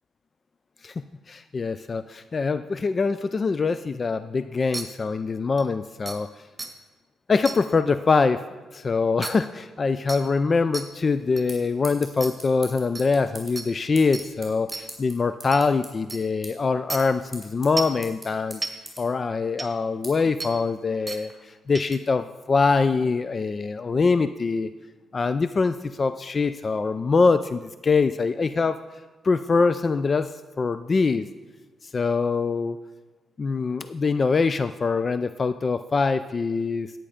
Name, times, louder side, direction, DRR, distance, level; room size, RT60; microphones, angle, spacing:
voice 1, 1.3-6.3 7.3-8.4 8.7-18.6 19.0-24.7 25.1-28.8 29.2-31.3 31.8-32.8 33.4-36.9, left 4 dB, 35° left, 12 dB, 0.4 m, -24 dB
sound 1, 4.7-4.8 5.6-5.7 6.1-6.2 6.6-6.7 7.4-7.6 9.2-9.3 10.1-10.2 10.7-10.8 11.4-11.5 12.2-12.3 12.9-13.0 13.6-13.7 14.1-14.2 14.7-14.8 15.5-15.6 16.1-16.2 16.9-17.0 17.8-18.0 18.6-18.7 19.6-19.7 20.4-20.5 21.1-21.2 21.7-22.0, right 3 dB, 20° right, 1.5 m, -32 dB
sound 2, 10.9-21.3, right 1 dB, ahead, 4.2 m, -46 dB
10.5 x 8.9 x 5.1 m, 1.2 s
cardioid pair, 85°, 0 cm